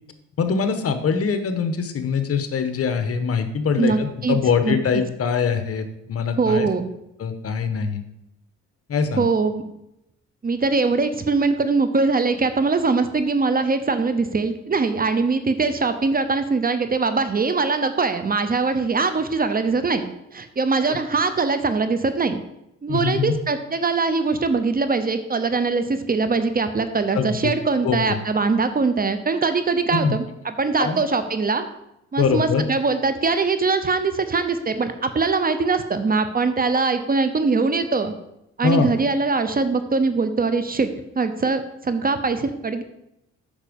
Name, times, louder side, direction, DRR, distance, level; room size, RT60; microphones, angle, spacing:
voice 1, 0.4-6.7 7.2-8.0 8.9-9.3 20.9-21.0 22.9-23.4 27.1-27.5 27.8-28.2 29.9-30.1 30.8-31.0 32.2-32.7 38.6-38.9, left 6 dB, 50° left, 9 dB, 1.1 m, -23 dB
voice 2, 3.8-4.4 4.6-5.0 6.4-6.8 9.2-9.6 10.4-20.0 20.3-22.4 22.8-31.6 32.1-38.1 38.6-40.9 41.2-42.8, right 4 dB, 30° right, 10 dB, 0.8 m, -22 dB
8.6 x 6.0 x 5.3 m, 0.84 s
cardioid pair, 90°, 30 cm